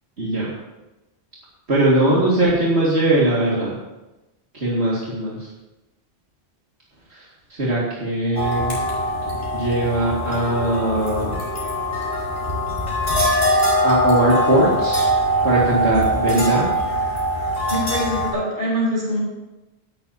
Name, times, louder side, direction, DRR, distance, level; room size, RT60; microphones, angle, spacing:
voice 1, 0.2-0.5 1.7-3.8 4.5-5.5 7.1-8.7 9.5-11.4 13.8-15.1 15.4-16.7, right 1 dB, 85° right, -6 dB, 2.6 m, -20 dB
sound 1, 8.3-18.3, equal, 35° left, 5.3 m, -22 dB
voice 2, 17.7-19.2, equal, 50° right, -6 dB, 5.9 m, -24 dB
17.0 x 12.5 x 2.9 m, 1.0 s
omnidirectional pair, 1.1 m